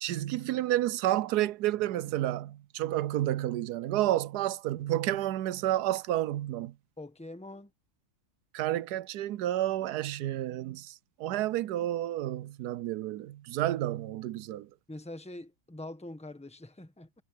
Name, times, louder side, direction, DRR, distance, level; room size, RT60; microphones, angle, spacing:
voice 1, 0.0-6.7 8.5-14.7, right 14 dB, 90° right, 1.2 m, -30 dB
voice 2, 7.0-7.7 14.9-17.2, left 1 dB, 5° left, 1.4 m, -44 dB
omnidirectional pair, 1.7 m